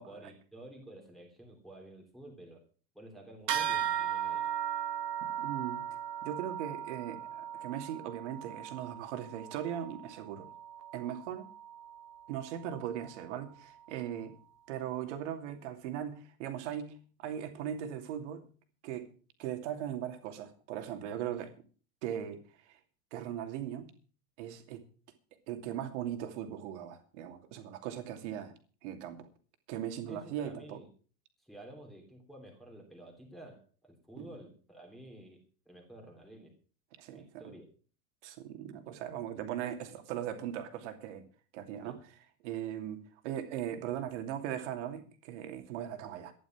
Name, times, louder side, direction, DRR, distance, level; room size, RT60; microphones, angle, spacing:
voice 1, 0.0-2.6 2.9-4.4 30.1-30.9 31.4-36.5 37.1-37.7 41.8-42.0, right 1 dB, ahead, -1 dB, 3.2 m, -51 dB
sound 1, 3.5-13.3, right 9 dB, 85° right, 2.2 m, -38 dB
voice 2, 5.2-5.8 6.2-10.5 10.9-11.5 12.3-14.4 14.7-18.5 18.8-19.1 19.4-21.5 22.0-22.4 22.7-22.8 23.1-23.9 24.4-24.8 25.5-28.5 28.8-29.3 29.7-30.8 34.2-34.3 37.0-37.4 38.2-41.2 41.5-42.0 42.4-46.3, right 10 dB, 45° right, 6 dB, 2.7 m, -39 dB
13.5 x 11.0 x 6.0 m, 0.40 s
supercardioid pair, 165°, 48 cm